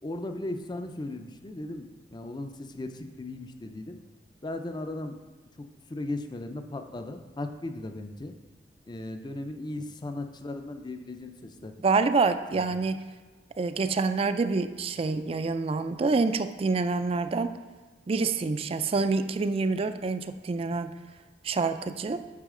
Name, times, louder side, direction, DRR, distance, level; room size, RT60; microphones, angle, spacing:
voice 1, 0.0-4.0 4.4-5.2 5.6-8.4 8.9-11.7 12.5-12.7, left 2 dB, 25° left, 7 dB, 0.5 m, -37 dB
voice 2, 11.8-13.0 13.6-17.6 18.1-20.9 21.4-22.2, right 4 dB, 35° right, 10 dB, 0.3 m, -27 dB
8.3 x 5.7 x 3.7 m, 1.3 s
head